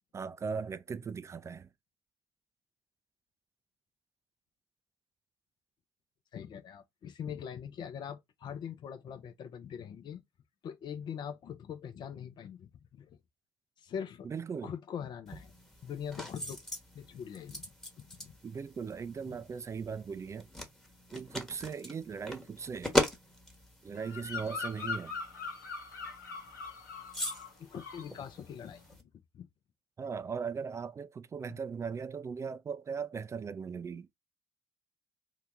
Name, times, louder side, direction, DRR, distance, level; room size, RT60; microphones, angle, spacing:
voice 1, 0.1-1.7 14.2-14.7 18.4-20.5 21.1-22.9 23.8-25.2 30.0-34.1, right 6 dB, 30° right, 0.4 m, -38 dB
voice 2, 6.3-10.2 10.6-13.2 13.8-14.3 14.6-15.5 15.8-16.6 16.9-18.4 19.3-19.4 27.6-29.5 31.5-31.6, left 8 dB, 50° left, 0.6 m, -43 dB
sound 1, 15.3-29.0, equal, 5° left, 1.1 m, -40 dB
Bird vocalization bird call bird song, 24.0-27.5 27.8-28.2, left 5 dB, 85° left, 0.7 m, -41 dB
2.8 x 2.3 x 3.6 m
figure-of-eight pair, 50°, 10 cm